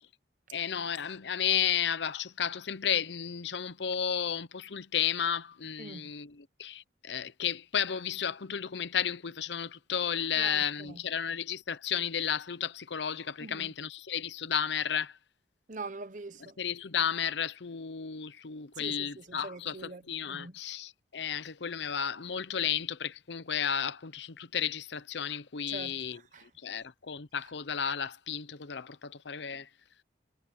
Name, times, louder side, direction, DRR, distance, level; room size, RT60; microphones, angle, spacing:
voice 1, 0.5-15.1 16.6-26.2 26.6-29.7, left 8 dB, 70° left, 0.7 m, -33 dB
voice 2, 5.8-6.1 10.4-11.0 13.4-13.7 15.7-16.6 18.8-20.6 25.7-26.8, right 3 dB, 45° right, 1.0 m, -44 dB
head